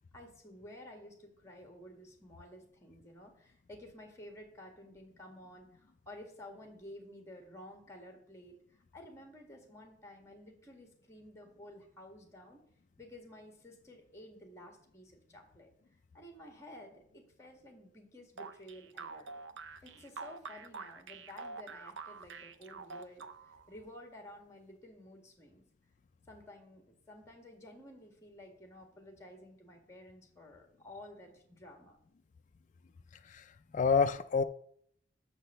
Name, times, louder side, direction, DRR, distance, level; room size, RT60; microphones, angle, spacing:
voice 1, 0.1-12.6 13.0-15.7 16.1-19.3 19.8-25.6 26.3-32.0, left 1 dB, 15° left, 3 dB, 1.7 m, -53 dB
sound 1, 18.4-23.7, right 4 dB, 75° right, 0.5 m, -46 dB
voice 2, 33.2-34.4, left 5 dB, 40° left, 9 dB, 0.3 m, -29 dB
6.4 x 6.3 x 6.9 m, 0.67 s
head